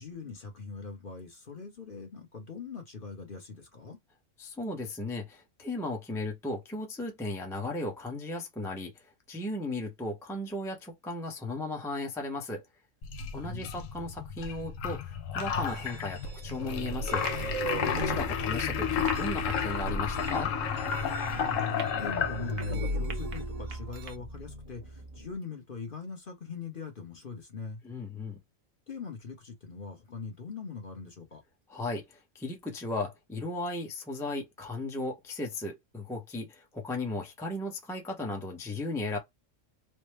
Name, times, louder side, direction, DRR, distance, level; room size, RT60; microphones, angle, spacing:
voice 1, 0.0-4.0 13.2-13.8 17.8-18.0 21.2-27.8 28.9-31.4, left 5 dB, 45° left, 1.1 m, -42 dB
voice 2, 4.4-12.6 13.3-17.3 17.9-20.5 27.8-28.4 31.7-39.2, left 2 dB, 5° left, 0.6 m, -36 dB
sound 1, 13.0-22.8, left 7 dB, 75° left, 1.0 m, -32 dB
sound 2, 15.7-24.2, right 6 dB, 65° right, 1.0 m, -48 dB
sound 3, 16.6-25.3, equal, 35° right, 0.8 m, -37 dB
3.3 x 2.0 x 3.2 m
omnidirectional pair, 1.4 m